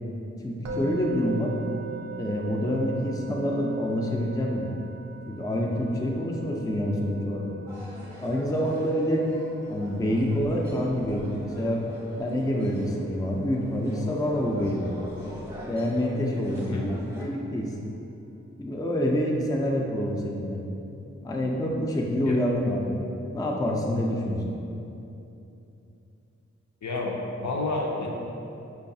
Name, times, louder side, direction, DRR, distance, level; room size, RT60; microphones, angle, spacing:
voice 1, 0.4-1.5 2.2-4.7 5.3-7.5 8.2-9.2 9.7-11.8 12.2-14.9 15.6-17.7 18.6-20.6 21.2-23.0 23.3-24.5, equal, 15° left, -1 dB, 0.4 m, -27 dB
Musical instrument, 0.6-11.8, right 4 dB, 65° right, 0.5 m, -41 dB
sound 1, 7.7-17.3, equal, 10° right, 0.8 m, -45 dB
voice 2, 16.5-16.9 22.3-22.4 26.8-28.1, left 2 dB, 70° left, -2 dB, 0.6 m, -30 dB
4.6 x 2.3 x 2.6 m, 2.8 s
cardioid pair, 55°, 30 cm